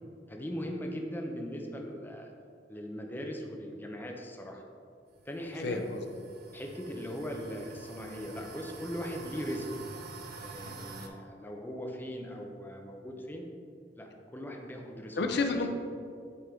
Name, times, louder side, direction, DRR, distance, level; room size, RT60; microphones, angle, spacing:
voice 1, 0.3-2.3 2.7-4.6 5.3-5.8 6.5-9.8 10.4-13.4 14.0-15.3, equal, 10° left, 1 dB, 0.6 m, -39 dB
sound 1, 5.1-11.1, right 4 dB, 60° right, 0.6 m, -47 dB
voice 2, 5.6-6.0 10.6-10.9 15.2-15.7, left 3 dB, 65° left, 5 dB, 0.5 m, -31 dB
8.4 x 3.6 x 3.6 m, 2.3 s
head